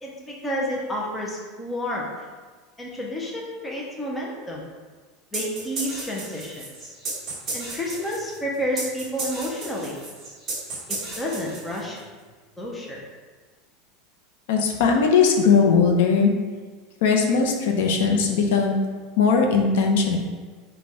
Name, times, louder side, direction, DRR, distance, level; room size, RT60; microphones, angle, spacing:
voice 1, 0.0-2.1 2.8-4.7 5.3-6.9 7.5-10.0 10.9-12.0 12.6-13.0, equal, 10° left, -3 dB, 0.5 m, -30 dB
sound 1, 5.3-12.0, right 3 dB, 20° right, 1.3 m, -34 dB
voice 2, 14.5-16.3 17.0-18.8 19.2-20.2, left 5 dB, 70° left, 2 dB, 0.6 m, -19 dB
4.2 x 2.2 x 4.6 m, 1.4 s
supercardioid pair, 175°, 0 cm